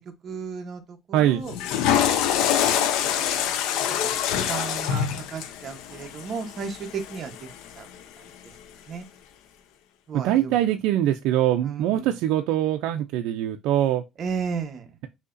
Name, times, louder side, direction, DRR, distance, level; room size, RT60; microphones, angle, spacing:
voice 1, 0.2-0.8 1.1-1.5 1.9-2.4 3.1-3.4 4.0-4.2 4.5-7.3 7.8-7.9 8.9-9.0 10.1-10.6 11.6-12.1 14.2-14.8, right 5 dB, 40° right, 1.0 m, -34 dB
Water / Toilet flush, 1.4-7.7, left 9 dB, 85° left, 0.6 m, -25 dB
voice 2, 10.1-14.0, right 12 dB, 85° right, 0.4 m, -23 dB
6.4 x 2.8 x 2.5 m
cardioid pair, 145°, 0 cm